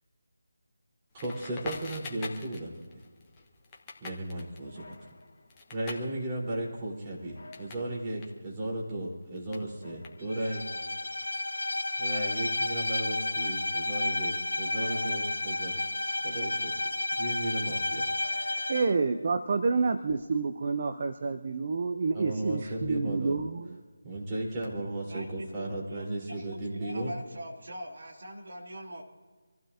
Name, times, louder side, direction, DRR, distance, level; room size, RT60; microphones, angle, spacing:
voice 1, 1.1-2.8 4.0-5.0 5.7-10.6 12.0-15.9 16.2-16.9 17.2-18.0 22.1-23.3 24.0-27.1, right 1 dB, 20° right, -5 dB, 4.5 m, -35 dB
Crackle, 1.2-7.9 8.1-10.6, left 3 dB, 20° left, 1.5 m, -45 dB
sound 1, 4.6-5.8 7.2-8.3 9.6-10.6 12.0-13.2 14.6-16.0 18.1-19.3, left 2 dB, 45° left, 2.2 m, -53 dB
Bowed string instrument, 10.3-18.9, left 2 dB, 80° left, 0.7 m, -31 dB
voice 2, 18.7-23.8, right 4 dB, 40° right, 7 dB, 0.8 m, -29 dB
voice 3, 25.0-29.0, equal, 60° right, -1 dB, 3.0 m, -42 dB
27.0 x 15.5 x 2.9 m, 1.5 s
figure-of-eight pair, 160°, 0 cm